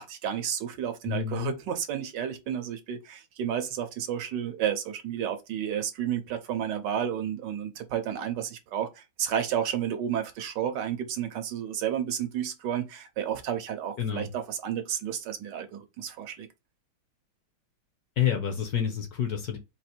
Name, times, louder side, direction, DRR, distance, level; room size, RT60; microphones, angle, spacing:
voice 1, 0.0-16.5, right 9 dB, 70° right, 1.2 m, -31 dB
voice 2, 1.1-1.5 14.0-14.3 18.2-19.6, left 9 dB, 65° left, 1.1 m, -28 dB
4.0 x 2.5 x 4.2 m
omnidirectional pair, 2.1 m